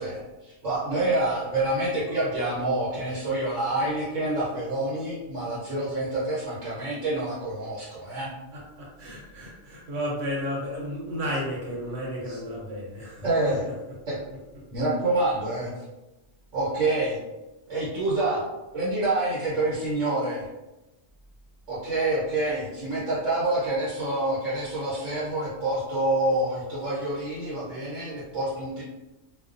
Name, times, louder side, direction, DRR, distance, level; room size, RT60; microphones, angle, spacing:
voice 1, 0.0-8.3 12.3-12.4 13.2-13.6 14.1-14.2 14.7-15.7 16.5-17.2 17.7-18.5 18.7-20.5 21.7-28.8, right 2 dB, 85° right, -9 dB, 1.2 m, -27 dB
voice 2, 8.5-13.5, equal, 65° right, -3 dB, 1.0 m, -33 dB
2.3 x 2.2 x 2.5 m, 1.0 s
omnidirectional pair, 1.3 m